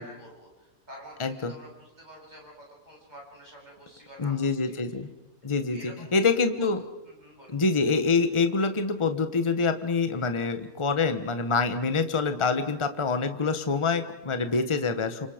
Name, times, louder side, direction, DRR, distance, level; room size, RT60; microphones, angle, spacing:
voice 1, 0.0-4.8 5.7-6.1 6.6-6.7 7.0-7.6 11.9-12.1, equal, 30° right, -2 dB, 8.3 m, -48 dB
voice 2, 1.2-1.5 4.2-5.1 5.4-6.8 7.5-15.3, left 4 dB, 20° left, 8 dB, 1.2 m, -26 dB
29.0 x 26.0 x 5.2 m, 0.96 s
omnidirectional pair, 1.5 m